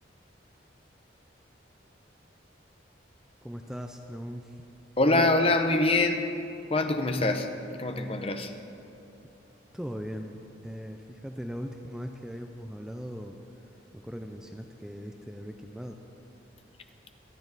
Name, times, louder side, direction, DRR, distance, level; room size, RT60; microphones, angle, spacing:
voice 1, 3.4-4.6 9.7-13.4 13.9-16.0, equal, 5° right, 4 dB, 0.5 m, -39 dB
voice 2, 5.0-6.3 6.7-7.5 7.8-8.5, left 2 dB, 30° left, 6 dB, 0.8 m, -24 dB
24.5 x 9.4 x 4.0 m, 2.7 s
head